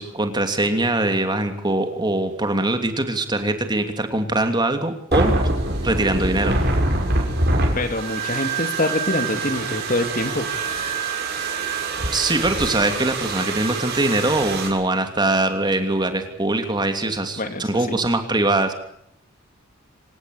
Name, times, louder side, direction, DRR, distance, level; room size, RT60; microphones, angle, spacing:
voice 1, 0.0-5.3 5.8-6.6 12.1-18.7, right 2 dB, 20° right, 7 dB, 3.0 m, -22 dB
sound 1, 5.1-14.7, right 2 dB, 55° right, 6.4 m, -24 dB
voice 2, 7.7-10.5 17.4-18.0, left 2 dB, 45° left, 8 dB, 2.5 m, -25 dB
26.5 x 17.5 x 8.4 m, 0.72 s
head